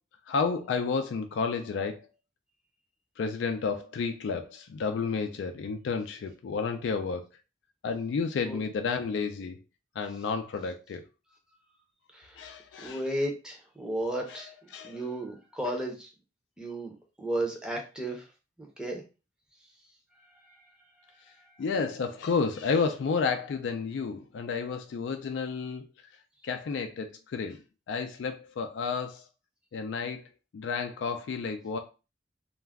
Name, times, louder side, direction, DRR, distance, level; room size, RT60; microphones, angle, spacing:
voice 1, 0.3-2.0 3.2-7.2 7.8-9.6 10.0-11.0 12.4-13.0 14.3-15.1 21.6-25.9 26.4-27.6 27.9-29.2 29.7-30.3 30.5-31.8, left 5 dB, 80° left, 0.3 m, -31 dB
voice 2, 12.8-14.5 14.8-16.1 16.6-16.9 17.2-18.2 18.6-19.0, right 1 dB, 5° right, 0.6 m, -33 dB
2.3 x 2.1 x 3.4 m
head